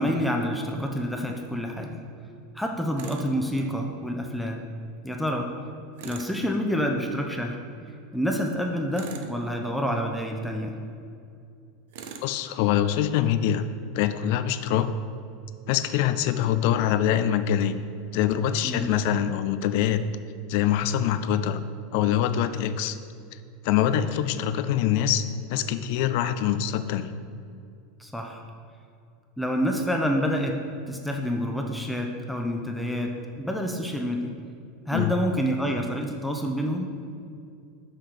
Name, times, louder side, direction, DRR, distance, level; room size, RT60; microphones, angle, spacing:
voice 1, 0.0-2.0 2.5-4.7 5.0-5.5 6.0-7.6 8.1-10.8 18.6-18.9 28.0-28.4 29.4-30.6 30.9-34.4 34.9-36.9, equal, 5° left, 2 dB, 0.7 m, -28 dB
Tools, 3.0-3.3 6.0-6.4 8.9-9.4 11.9-12.3, right 5 dB, 60° right, 0.6 m, -40 dB
voice 2, 12.2-13.6 13.9-14.9 15.7-17.8 18.1-20.0 20.5-21.6 21.9-23.0 23.6-27.2 34.9-35.1, left 10 dB, 55° left, 11 dB, 0.4 m, -24 dB
5.7 x 5.6 x 5.0 m, 2.4 s
figure-of-eight pair, 80°, 0 cm